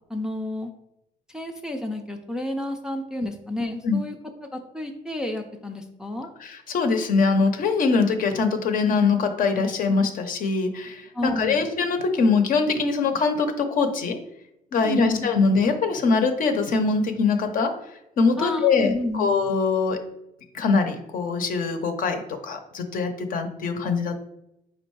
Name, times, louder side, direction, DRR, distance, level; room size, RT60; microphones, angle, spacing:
voice 1, 0.1-0.7 1.3-4.1 4.5-6.3 11.1-11.7 14.8-15.3 18.4-19.4, left 1 dB, 5° right, 3 dB, 0.4 m, -30 dB
voice 2, 6.4-14.2 14.7-17.7 18.2-20.0 20.5-24.2, left 4 dB, 55° left, 6 dB, 0.7 m, -23 dB
4.4 x 2.4 x 4.6 m, 0.84 s
cardioid pair, 110°, 17 cm